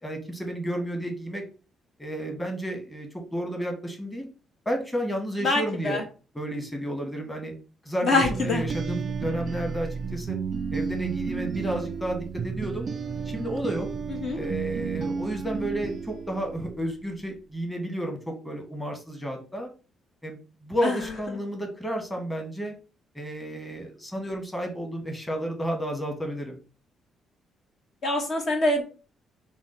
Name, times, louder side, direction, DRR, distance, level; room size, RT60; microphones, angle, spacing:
voice 1, 0.0-1.4 2.0-4.3 4.6-6.0 6.3-7.5 7.8-10.4 10.7-12.9 13.2-13.9 14.3-19.7 20.2-22.7 23.1-26.6, right 1 dB, 10° left, 2 dB, 1.3 m, -32 dB
voice 2, 5.4-6.0 8.0-8.6 14.2-14.4 20.8-21.0 28.0-28.8, left 2 dB, 55° left, 3 dB, 1.2 m, -24 dB
sound 1, 8.2-16.9, right 5 dB, 50° right, 0.3 m, -32 dB
5.8 x 2.2 x 3.9 m, 0.35 s
cardioid pair, 90°, 0 cm